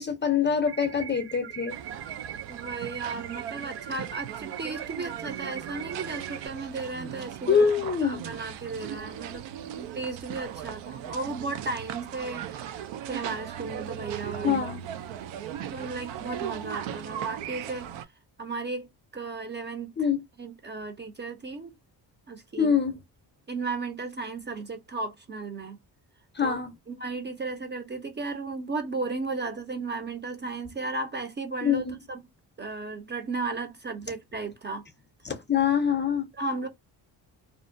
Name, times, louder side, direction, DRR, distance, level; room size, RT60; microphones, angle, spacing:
voice 1, 0.0-1.8 7.5-8.3 14.4-14.8 20.0-20.2 22.6-23.0 26.3-26.7 31.6-31.9 35.2-36.3, left 7 dB, 25° left, 0.5 m, -24 dB
sound 1, 0.7-6.5, right 9 dB, 65° right, 1.0 m, -41 dB
sound 2, 1.7-18.0, right 10 dB, 85° right, 0.5 m, -38 dB
voice 2, 2.5-9.5 9.7-12.6 13.1-14.6 15.7-17.9 18.4-18.9 19.1-19.9 20.4-21.7 22.3-22.8 23.5-25.8 26.4-26.6 26.9-32.2 32.6-34.8 36.3-36.7, right 3 dB, 25° right, 0.5 m, -35 dB
2.5 x 2.1 x 2.5 m
cardioid pair, 85°, 44 cm